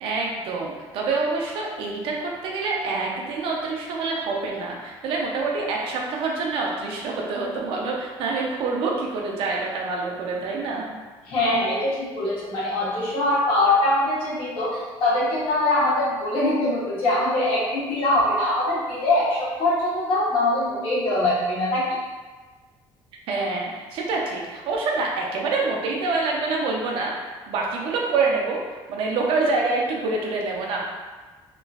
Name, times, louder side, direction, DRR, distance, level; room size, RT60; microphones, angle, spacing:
voice 1, 0.0-11.0 23.3-30.8, right 3 dB, 65° right, -1 dB, 0.5 m, -26 dB
voice 2, 11.2-21.8, left 1 dB, 65° left, -9 dB, 1.3 m, -23 dB
3.0 x 2.4 x 2.3 m, 1.3 s
cardioid pair, 130°, 10 cm